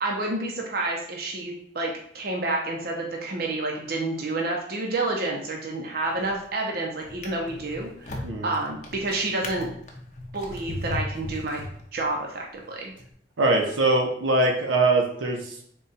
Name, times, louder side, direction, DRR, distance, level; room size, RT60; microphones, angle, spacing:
voice 1, 0.0-8.2 8.4-9.7 10.3-12.9, right 2 dB, 50° right, 0 dB, 0.6 m, -29 dB
Drawer open or close, 6.0-6.5 7.0-12.2 12.9-13.1, left 1 dB, 40° left, 0.6 m, -37 dB
voice 2, 13.4-15.6, right 2 dB, 90° right, 2 dB, 0.7 m, -22 dB
3.7 x 2.3 x 4.0 m, 0.64 s
head